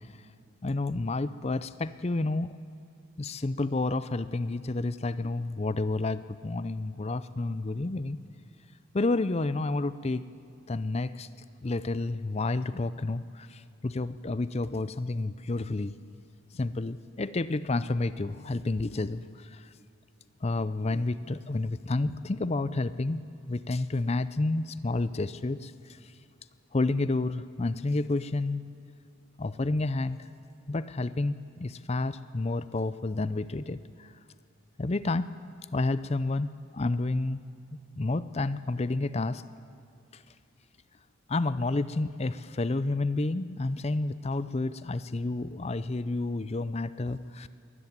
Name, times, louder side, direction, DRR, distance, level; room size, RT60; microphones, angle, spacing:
voice 1, 0.6-2.5 3.2-8.2 8.9-10.2 10.7-11.3 11.6-13.5 13.8-15.9 16.5-19.2 20.4-23.2 23.5-25.7 26.7-28.6 29.4-30.2 30.7-33.8 34.8-35.3 35.7-36.5 36.7-37.4 38.0-39.4 41.3-47.5, left 2 dB, 30° left, 15 dB, 0.5 m, -30 dB
22.5 x 13.0 x 9.6 m, 2.6 s
head